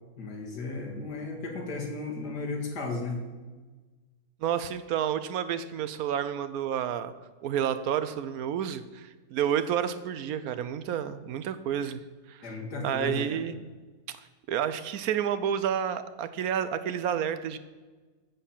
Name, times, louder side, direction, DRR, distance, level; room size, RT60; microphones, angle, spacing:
voice 1, 0.2-3.2 12.4-13.5, left 3 dB, 85° left, 0 dB, 2.4 m, -35 dB
voice 2, 4.4-7.1 7.4-12.0 12.3-12.5 12.8-13.6 14.5-17.6, right 9 dB, 70° right, 13 dB, 1.0 m, -30 dB
13.0 x 4.5 x 7.2 m, 1.3 s
omnidirectional pair, 1.7 m